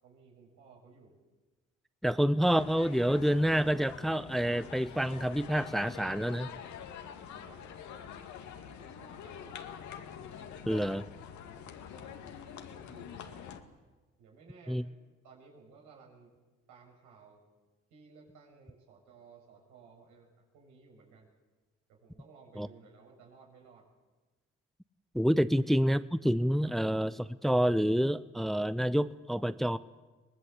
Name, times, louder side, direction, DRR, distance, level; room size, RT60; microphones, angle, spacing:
voice 1, 0.0-1.2 7.1-9.7 11.9-13.5 14.2-14.8 15.2-16.3 16.7-17.4 17.9-21.3 21.9-23.9 25.5-25.8 26.6-26.8, right 5 dB, 85° right, 0 dB, 7.0 m, -58 dB
voice 2, 2.0-6.5 10.7-11.1 14.7-14.8 22.6-22.7 25.1-29.8, equal, ahead, 15 dB, 0.8 m, -28 dB
sound 1, 2.5-13.6, left 8 dB, 75° left, 2.3 m, -46 dB
24.0 x 19.5 x 8.4 m, 1.2 s
supercardioid pair, 60°, 29 cm